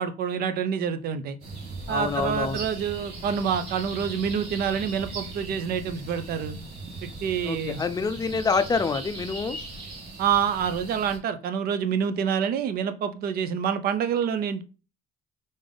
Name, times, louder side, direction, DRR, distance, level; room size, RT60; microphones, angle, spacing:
voice 1, 0.0-1.4 1.9-6.6 7.0-7.8 10.2-14.6, right 7 dB, 65° right, 11 dB, 0.6 m, -27 dB
sound 1, 1.4-11.2, right 2 dB, 90° right, 1.9 m, -39 dB
voice 2, 1.9-2.6 7.4-9.6, left 4 dB, 20° left, 12 dB, 0.4 m, -26 dB
3.9 x 3.4 x 3.8 m, 0.35 s
cardioid pair, 110°, 17 cm